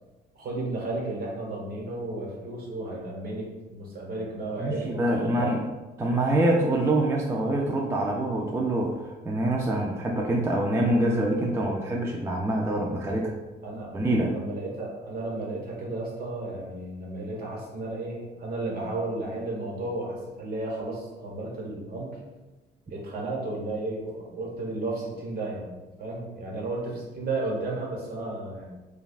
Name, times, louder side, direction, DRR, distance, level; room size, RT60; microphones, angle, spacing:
voice 1, 0.3-5.5 13.6-22.2 22.9-25.7 26.0-28.7, right 2 dB, 55° right, -3 dB, 1.2 m, -33 dB
voice 2, 4.6-5.6 6.0-13.3 13.9-14.3, right 1 dB, 15° right, -1 dB, 0.4 m, -25 dB
5.2 x 2.3 x 2.4 m, 1.2 s
cardioid pair, 120°, 18 cm